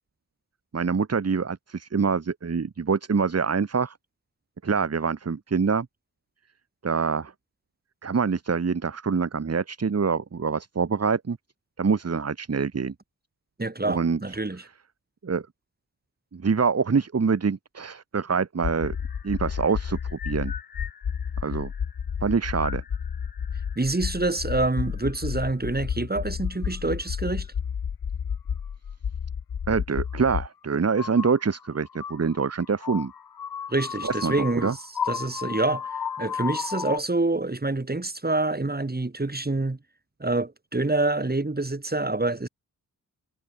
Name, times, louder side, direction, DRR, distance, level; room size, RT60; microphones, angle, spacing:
voice 1, 0.7-4.0 4.6-5.9 6.8-7.3 8.0-11.4 11.8-12.9 13.9-14.2 15.2-15.5 16.3-19.0 19.2-20.5 21.4-21.7 22.2-22.8 29.7-33.1 34.0-34.7, right 5 dB, 45° right, 1.6 m, -25 dB
voice 2, 13.6-14.6 23.8-27.5 33.7-39.8 40.2-42.5, right 2 dB, 25° right, 5.4 m, -27 dB
sound 1, 18.6-30.5 30.9-37.0, left 7 dB, 90° left, 6.5 m, -32 dB
cardioid pair, 60°, 35 cm